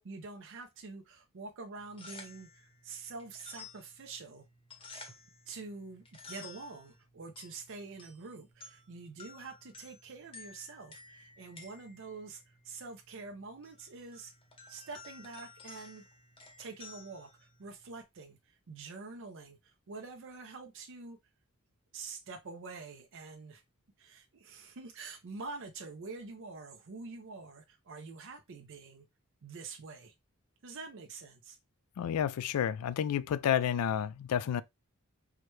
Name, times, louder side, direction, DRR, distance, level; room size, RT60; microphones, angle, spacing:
voice 1, 0.0-4.5 4.8-5.1 5.5-14.3 14.7-16.0 16.6-21.2 21.9-23.6 24.0-29.1 29.4-30.1 30.6-31.6, right 4 dB, 60° right, 0.5 m, -46 dB
sound 1, 1.8-18.0, left 3 dB, 25° left, 0.8 m, -54 dB
voice 2, 32.0-34.6, left 9 dB, 85° left, 0.3 m, -30 dB
4.7 x 2.2 x 3.0 m
head